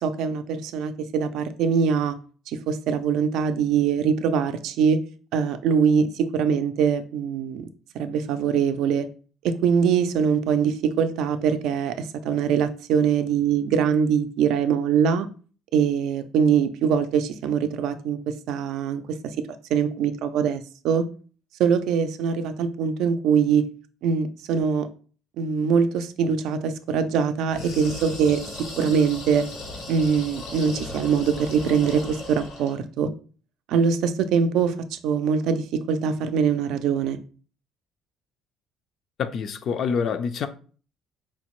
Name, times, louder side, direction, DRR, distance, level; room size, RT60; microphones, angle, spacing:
voice 1, 0.0-2.2 2.5-5.0 5.3-7.7 7.9-9.1 9.4-15.3 15.7-19.4 19.7-21.1 21.6-23.7 24.0-24.9 25.4-28.4 28.8-29.4 29.9-33.1 33.7-37.2, right 6 dB, 75° right, 0.4 m, -23 dB
sound 1, 27.5-32.8, left 2 dB, 80° left, 1.2 m, -37 dB
voice 2, 39.2-40.5, left 6 dB, 55° left, 0.4 m, -26 dB
4.3 x 2.1 x 3.0 m
cardioid pair, 95°, 0 cm